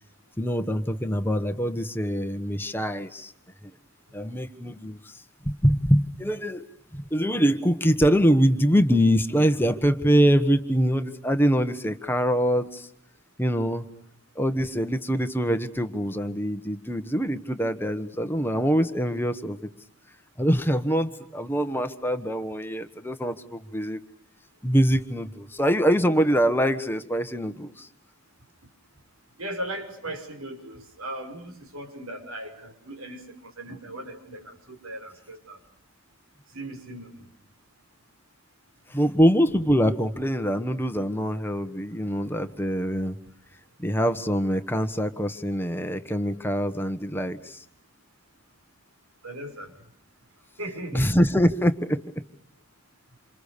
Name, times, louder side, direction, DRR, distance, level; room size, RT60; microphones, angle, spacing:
voice 1, 0.4-3.3 4.1-6.7 6.9-12.9 13.4-13.9 14.3-19.7 20.4-24.0 24.6-27.9 38.9-43.2 43.8-47.6 50.9-52.0, equal, 10° left, 8 dB, 1.2 m, -24 dB
voice 2, 29.4-35.6 36.5-37.1 49.2-49.7 50.6-51.1, right 1 dB, 85° right, 6 dB, 6.1 m, -38 dB
28.0 x 27.5 x 6.8 m, 0.68 s
head